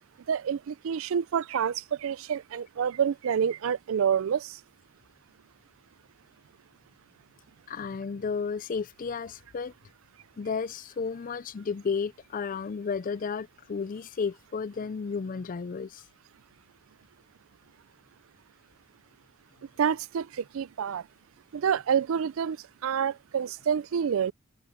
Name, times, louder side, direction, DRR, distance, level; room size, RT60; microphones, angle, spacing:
voice 1, 0.3-4.6 19.8-21.0 21.5-22.6 22.8-24.3, right 7 dB, 65° right, 0.4 m, -28 dB
voice 2, 7.7-9.7 10.4-16.0, left 5 dB, 40° left, 0.4 m, -33 dB
head